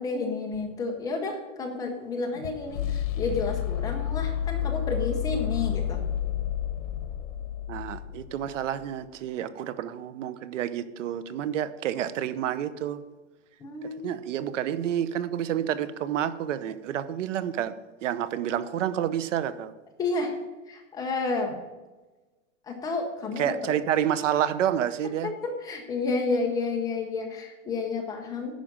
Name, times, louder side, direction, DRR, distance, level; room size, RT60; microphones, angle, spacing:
voice 1, 0.0-6.0 13.6-14.1 20.0-20.3 20.7-21.6 22.7-23.8 25.2-28.5, left 3 dB, 10° left, 2 dB, 0.6 m, -31 dB
sound 1, 0.5-8.6, left 10 dB, 85° left, 1.2 m, -31 dB
voice 2, 7.7-13.0 14.0-17.7 18.0-19.7 23.4-25.3, right 10 dB, 70° right, 13 dB, 0.9 m, -29 dB
10.5 x 5.1 x 7.2 m, 1.2 s
supercardioid pair, 170°, 38 cm